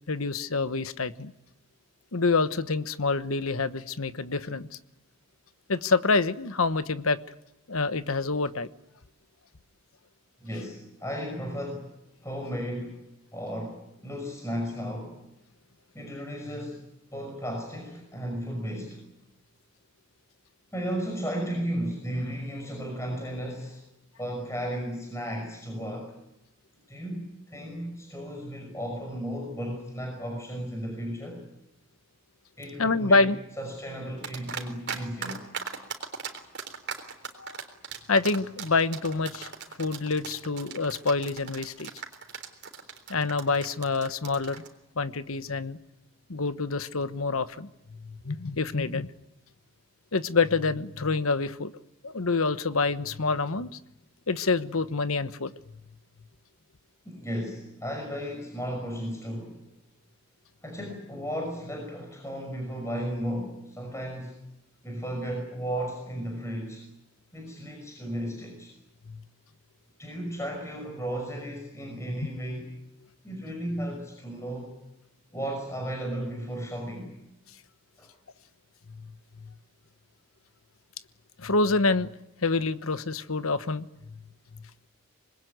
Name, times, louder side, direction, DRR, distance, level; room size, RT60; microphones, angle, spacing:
voice 1, 0.1-1.3 2.1-4.8 5.7-7.2 7.7-8.7 32.8-33.4 37.4-37.6 38.1-39.5 39.8-41.9 43.1-44.6 45.0-45.8 46.3-49.1 50.1-51.7 52.0-53.7 54.3-55.5 69.1-69.2 79.4-79.5 81.4-82.1 82.4-84.2, left 3 dB, 80° left, 13 dB, 1.2 m, -27 dB
voice 2, 10.4-11.9 12.2-13.0 13.3-15.2 15.9-16.8 17.1-19.0 20.7-23.8 24.2-26.1 26.9-31.4 32.6-33.3 33.6-35.4 57.0-59.6 60.6-64.4 64.8-66.9 67.3-68.7 70.0-72.7 73.2-74.7 75.3-77.1 78.0-78.1, equal, 15° left, 1 dB, 5.8 m, -34 dB
sound 1, 34.2-35.0 35.2-44.7, right 6 dB, 50° right, 3.7 m, -37 dB
26.0 x 21.0 x 9.4 m, 0.88 s
head